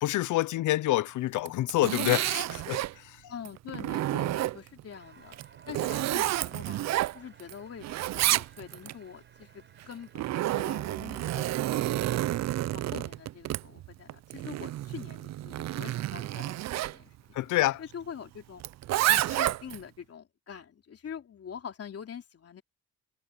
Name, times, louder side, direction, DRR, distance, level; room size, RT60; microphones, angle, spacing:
voice 1, 0.0-3.3 17.3-17.8, left 16 dB, 80° left, 0.7 m, -27 dB
Zipper (clothing), 1.3-2.9 3.5-4.8 5.3-7.5 7.8-8.9 9.8-17.0 18.6-19.8, right 15 dB, 65° right, 0.5 m, -30 dB
voice 2, 3.3-5.4 5.7-6.9 7.1-12.4 12.7-17.2 17.8-18.6 19.1-22.6, left 8 dB, 50° left, 3.6 m, -45 dB
sound 1, 4.9-10.2, right 5 dB, 40° right, 6.0 m, -58 dB
cardioid pair, 90°, 30 cm